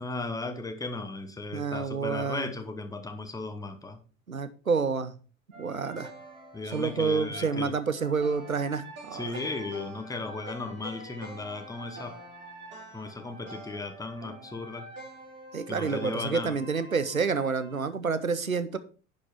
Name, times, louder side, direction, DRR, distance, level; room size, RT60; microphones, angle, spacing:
voice 1, 0.0-4.0 6.5-7.7 9.1-12.2 12.9-14.9 15.7-16.6, left 3 dB, 10° left, 7 dB, 1.2 m, -36 dB
voice 2, 1.5-2.5 4.3-5.1 5.6-6.1 6.7-9.3 15.5-18.8, right 5 dB, 90° right, 13 dB, 0.8 m, -29 dB
sound 1, 5.5-17.9, right 1 dB, 25° right, 4.2 m, -46 dB
10.5 x 5.4 x 4.5 m, 0.37 s
figure-of-eight pair, 75°, 40 cm